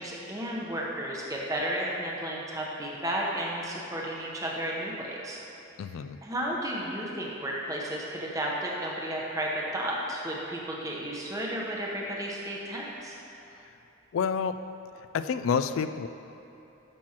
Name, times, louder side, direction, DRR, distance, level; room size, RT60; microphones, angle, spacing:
voice 1, 0.0-5.4 6.2-13.1, right 1 dB, 15° right, -3 dB, 0.9 m, -33 dB
voice 2, 5.8-6.2 14.1-14.6 15.1-16.1, left 6 dB, 85° left, 11 dB, 0.3 m, -28 dB
11.5 x 6.2 x 2.9 m, 3.0 s
head